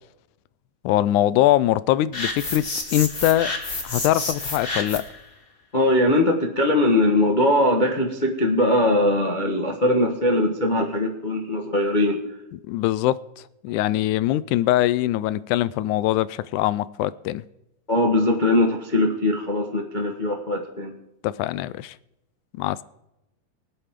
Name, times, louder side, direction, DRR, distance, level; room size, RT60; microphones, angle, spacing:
voice 1, 0.8-2.6 2.9-3.5 3.8-5.0 12.7-13.2 13.6-17.4 21.2-22.0 22.6-22.8, left 14 dB, 85° left, 2.0 m, -22 dB
sound 1, 2.1-5.2, left 2 dB, 25° left, 1.4 m, -29 dB
voice 2, 5.7-12.2 17.9-20.9, left 1 dB, 65° left, 0.4 m, -21 dB
24.0 x 8.6 x 3.7 m
omnidirectional pair, 3.5 m